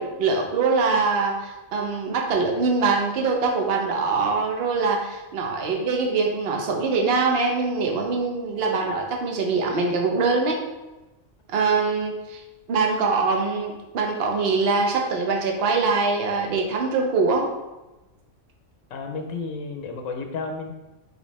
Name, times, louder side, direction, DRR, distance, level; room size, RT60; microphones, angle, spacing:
voice 1, 0.0-10.6 11.5-12.4 12.7-17.5, right 4 dB, 55° right, 2 dB, 0.9 m, -23 dB
voice 2, 18.9-20.7, left 4 dB, 80° left, 4 dB, 1.0 m, -32 dB
5.1 x 3.4 x 3.1 m, 1.1 s
omnidirectional pair, 1.3 m